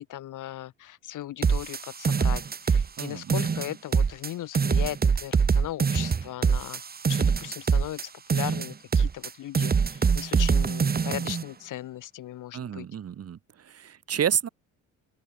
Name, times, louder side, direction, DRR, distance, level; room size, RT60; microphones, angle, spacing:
voice 1, 0.0-6.8 7.1-12.9, left 13 dB, 70° left, 4.4 m, -38 dB
sound 1, 1.4-3.0 3.3-4.3 4.5-8.0 8.3-9.3 9.5-11.4, right 5 dB, 30° right, 2.5 m, -24 dB
voice 2, 3.0-3.3 12.5-13.4 13.6-14.5, right 9 dB, 50° right, 7.0 m, -30 dB
open air
cardioid pair, 125°, 32 cm